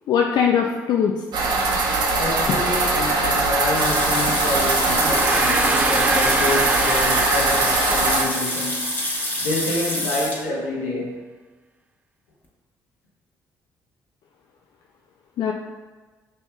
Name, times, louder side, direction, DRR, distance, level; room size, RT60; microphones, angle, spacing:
voice 1, 0.1-1.1 15.4-15.5, left 7 dB, 65° left, 1 dB, 0.4 m, -20 dB
sound 1, 1.3-8.2, right 3 dB, 65° right, 0.6 m, -21 dB
voice 2, 2.1-9.0 9.4-11.2, left 2 dB, 90° left, -5 dB, 1.0 m, -27 dB
sound 2, 3.8-10.4, left 1 dB, 20° left, 1.1 m, -27 dB
Gong, 4.8-9.4, right 2 dB, 15° right, 0.3 m, -27 dB
5.5 x 2.7 x 2.2 m, 1.3 s
hypercardioid pair, 55°, 8 cm